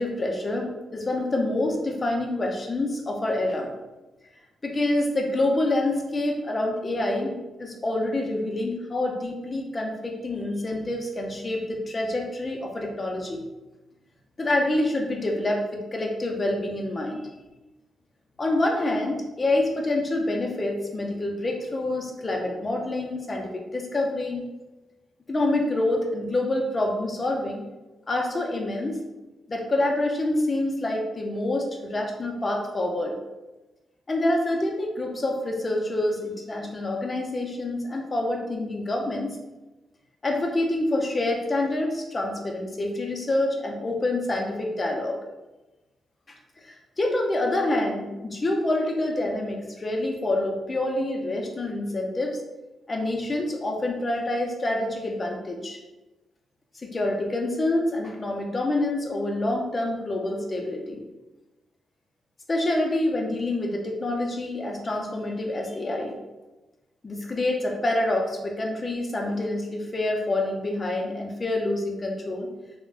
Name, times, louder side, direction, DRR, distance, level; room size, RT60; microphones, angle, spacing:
voice 1, 0.0-3.7 4.6-13.4 14.4-17.2 18.4-24.4 25.3-27.6 28.1-29.0 29.5-33.2 34.1-39.4 40.2-45.2 46.3-52.4 52.9-55.8 56.7-61.0 62.5-66.2 67.0-72.5, left 1 dB, 30° left, 1 dB, 0.5 m, -27 dB
3.4 x 2.1 x 2.4 m, 1.1 s
cardioid pair, 90°, 0 cm